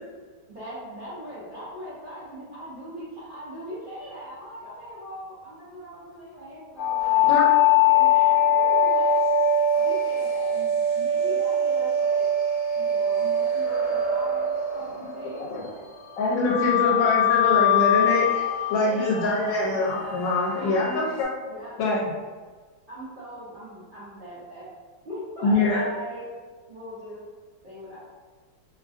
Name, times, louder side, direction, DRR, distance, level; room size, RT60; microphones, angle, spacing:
voice 1, 0.5-7.3 7.7-9.2 9.7-12.2 12.7-15.5 16.8-17.1 18.8-19.8 20.6-21.1 21.5-21.7 22.9-24.7 25.0-26.3 26.7-27.2 27.6-28.0, equal, 85° right, -11 dB, 0.4 m, -40 dB
sound 1, 6.8-15.6 16.4-21.2, left 4 dB, 55° left, 0.8 m, -22 dB
voice 2, 16.2-18.4 18.7-21.3 21.8-22.0 25.4-25.8, left 2 dB, 85° left, -4 dB, 1.2 m, -24 dB
3.0 x 2.4 x 2.3 m, 1.5 s
omnidirectional pair, 1.9 m